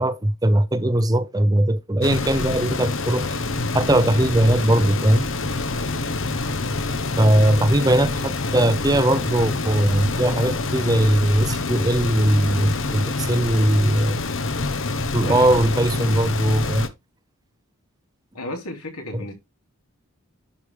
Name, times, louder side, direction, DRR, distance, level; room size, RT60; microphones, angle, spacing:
voice 1, 0.0-3.4 3.7-5.3 7.2-14.2 15.1-16.9, right 1 dB, 15° right, 0.6 m, -20 dB
sound 1, 2.0-16.9, left 3 dB, 60° left, 1.0 m, -26 dB
voice 2, 7.4-8.1 15.2-15.5 18.3-19.3, left 2 dB, 90° left, 3.5 m, -34 dB
11.0 x 4.8 x 3.6 m
head